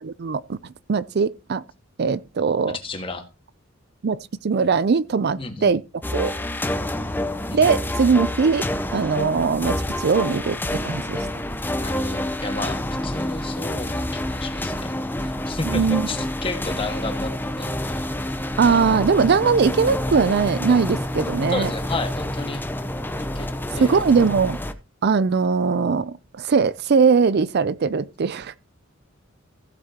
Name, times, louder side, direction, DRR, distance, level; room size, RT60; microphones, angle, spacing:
voice 1, 0.0-0.6 0.9-1.6 2.0-2.8 4.0-5.8 6.1-6.3 7.5-8.6 8.9-11.3 15.6-16.1 18.6-21.7 23.8-24.6 25.0-28.6, right 5 dB, 50° right, 0.4 m, -20 dB
voice 2, 2.7-3.3 5.4-5.7 7.5-7.6 11.8-17.3 17.6-18.1 21.5-22.6 23.2-24.1, left 3 dB, 25° left, 1.7 m, -32 dB
sound 1, 6.0-24.7, left 1 dB, 10° left, 0.7 m, -28 dB
16.0 x 7.8 x 2.9 m
head